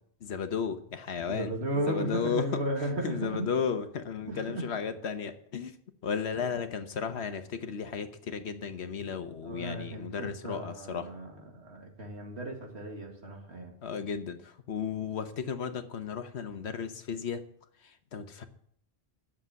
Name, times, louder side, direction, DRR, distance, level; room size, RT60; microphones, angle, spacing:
voice 1, 0.2-2.5 3.0-5.7 6.0-11.1 13.8-17.4 17.8-18.5, left 6 dB, 80° left, 9 dB, 1.3 m, -34 dB
voice 2, 1.3-3.5 4.3-4.6 9.4-13.7, right 1 dB, 80° right, 1 dB, 2.4 m, -35 dB
10.0 x 7.2 x 8.1 m, 0.67 s
omnidirectional pair, 1.1 m